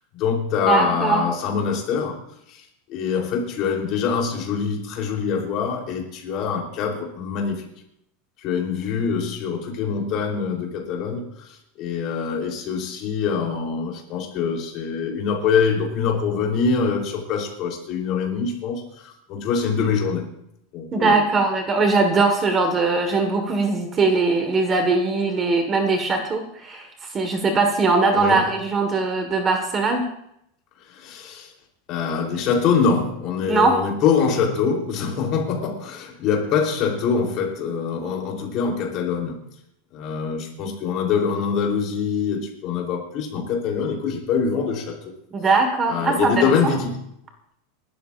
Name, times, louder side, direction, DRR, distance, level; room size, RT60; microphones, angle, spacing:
voice 1, 0.1-2.2 2.5-7.7 8.4-20.3 20.7-21.2 28.1-28.4 30.9-31.5 31.9-39.4 39.9-45.0 45.9-47.0, left 6 dB, 35° left, 1 dB, 3.5 m, -24 dB
voice 2, 0.6-1.3 20.9-30.0 33.5-33.8 45.3-46.5, right 3 dB, 20° right, 5 dB, 1.5 m, -20 dB
28.0 x 13.0 x 2.5 m, 0.76 s
supercardioid pair, 170°, 0 cm